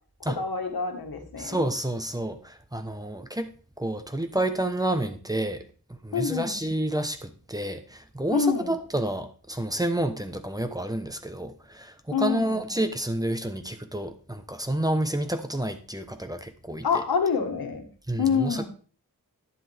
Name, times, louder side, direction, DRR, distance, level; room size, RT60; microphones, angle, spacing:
voice 1, 0.3-1.6 6.1-6.6 8.3-8.7 12.1-12.6 16.8-17.9 18.2-18.7, left 5 dB, 85° left, 5 dB, 1.7 m, -26 dB
voice 2, 1.4-3.5 3.8-5.6 6.0-16.9 18.1-18.7, right 1 dB, 10° right, 8 dB, 1.1 m, -29 dB
11.0 x 9.8 x 3.5 m, 0.40 s
wide cardioid pair, 95°, 36 cm